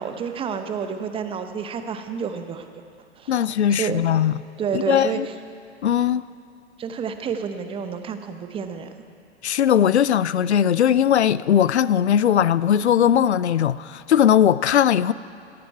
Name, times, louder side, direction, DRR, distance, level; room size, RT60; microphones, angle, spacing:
voice 1, 0.0-2.7 3.2-4.0 4.6-5.3 6.8-8.9, right 6 dB, 15° right, 0.8 m, -29 dB
voice 2, 3.3-4.3 4.7-5.3 5.8-6.2 9.4-15.1, left 9 dB, 75° left, 0.5 m, -19 dB
17.5 x 13.5 x 4.6 m
figure-of-eight pair, 100°, 34 cm